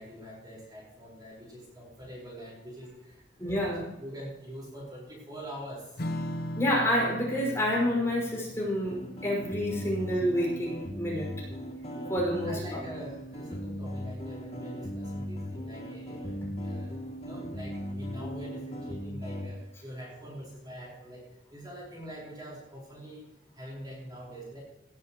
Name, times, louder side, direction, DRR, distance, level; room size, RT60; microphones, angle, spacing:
voice 1, 0.0-3.7 4.0-5.9 11.9-12.1 12.4-16.9 17.2-23.3 23.5-24.6, equal, 25° right, -4 dB, 4.9 m, -44 dB
voice 2, 3.4-3.8 6.6-11.3 12.1-12.8, equal, 15° left, -4 dB, 5.9 m, -28 dB
Strum, 6.0-12.8, equal, 60° left, 1.0 m, -41 dB
sound 1, 8.9-19.5, equal, 35° left, 2.8 m, -38 dB
18.0 x 11.5 x 3.1 m, 0.91 s
head